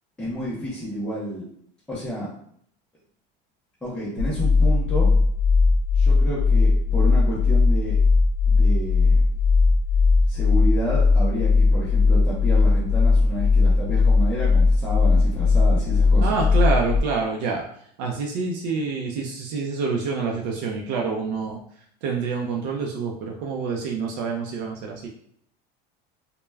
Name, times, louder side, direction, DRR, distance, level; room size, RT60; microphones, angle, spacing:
voice 1, 0.2-1.4 1.9-2.3 3.8-5.1 5.9-8.0 8.5-9.2 10.3-16.4, equal, 5° left, -10 dB, 0.4 m, -30 dB
sound 1, 4.2-17.0, left 4 dB, 75° left, 0.6 m, -18 dB
voice 2, 16.2-17.6 18.0-21.6 22.0-25.1, right 4 dB, 70° right, 0 dB, 0.4 m, -27 dB
2.2 x 2.1 x 3.2 m, 0.66 s
cardioid pair, 175°, 21 cm